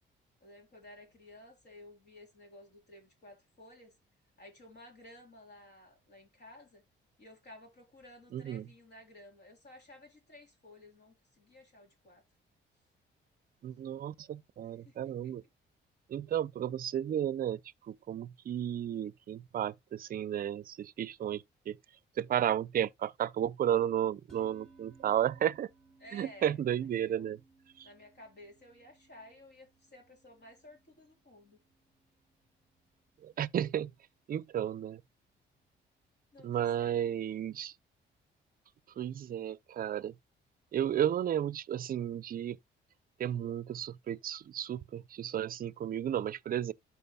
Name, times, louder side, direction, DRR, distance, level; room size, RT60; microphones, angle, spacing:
voice 1, 0.4-3.9 4.4-6.8 7.2-12.2 14.8-15.3 26.0-27.3 27.8-31.6 36.3-37.0, left 1 dB, 60° left, 3.6 m, -55 dB
voice 2, 8.3-8.7 13.6-15.4 16.1-17.6 17.9-21.8 22.2-25.7 26.1-27.4 27.8-27.9 33.2-33.9 34.3-35.0 36.4-37.7 39.0-40.1 40.7-42.6 43.2-46.7, right 10 dB, 45° right, 0.5 m, -33 dB
sound 1, 24.3-34.7, right 3 dB, 5° left, 2.5 m, -65 dB
12.0 x 4.7 x 2.3 m
cardioid pair, 90°, 20 cm